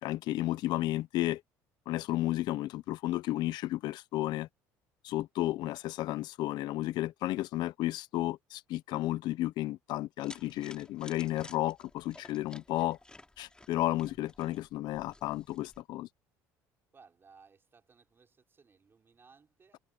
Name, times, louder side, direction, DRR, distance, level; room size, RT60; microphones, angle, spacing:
voice 1, 0.0-1.4 1.9-4.5 5.0-13.0 13.4-16.1, left 15 dB, 65° left, 1.0 m, -33 dB
sound 1, 10.2-15.8, left 2 dB, 10° left, 3.4 m, -55 dB
voice 2, 16.9-19.8, right 5 dB, 30° right, 5.7 m, -61 dB
supercardioid pair, 85°, 8 cm